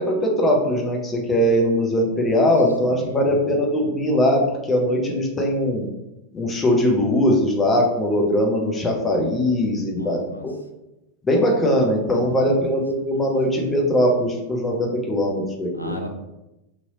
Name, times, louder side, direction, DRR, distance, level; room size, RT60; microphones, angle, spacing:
voice 1, 0.0-5.9 6.3-10.5 11.2-15.9, equal, 15° left, -1 dB, 0.7 m, -20 dB
voice 2, 2.9-3.4 9.9-10.5 12.1-12.6 15.7-16.1, left 1 dB, 90° left, 3 dB, 0.3 m, -35 dB
2.9 x 2.7 x 2.7 m, 0.95 s
figure-of-eight pair, 90°, 0 cm